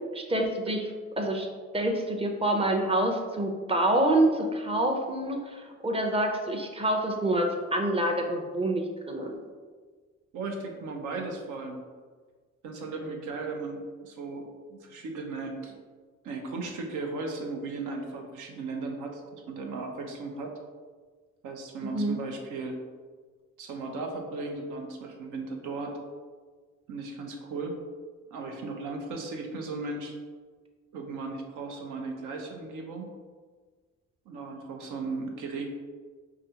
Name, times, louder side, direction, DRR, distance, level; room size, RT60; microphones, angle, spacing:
voice 1, 0.1-1.5 1.7-9.3 21.8-22.2, right 1 dB, 20° right, 2 dB, 0.5 m, -27 dB
voice 2, 10.3-11.8 12.6-15.8 16.2-20.5 21.4-22.8 23.6-26.0 26.9-27.8 28.3-30.1 30.9-33.1 34.3-35.7, right 3 dB, 85° right, 3 dB, 0.7 m, -36 dB
4.9 x 2.3 x 2.8 m, 1.5 s
cardioid pair, 90°, 30 cm